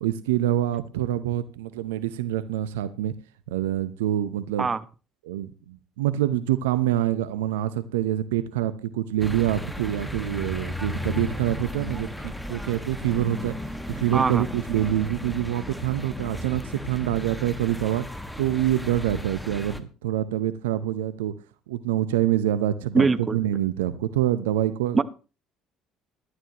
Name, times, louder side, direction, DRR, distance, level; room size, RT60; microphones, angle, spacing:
voice 1, 0.0-3.1 3.5-4.7 5.3-13.6 13.9-18.1 18.4-21.3 21.7-25.0, right 12 dB, 80° right, 0.7 m, -26 dB
sound 1, 9.2-19.8, left 1 dB, 5° left, 1.6 m, -35 dB
voice 2, 14.1-14.5 22.9-23.4 24.9-25.0, right 4 dB, 30° right, 0.9 m, -22 dB
17.5 x 11.5 x 3.0 m
hypercardioid pair, 60°, 0 cm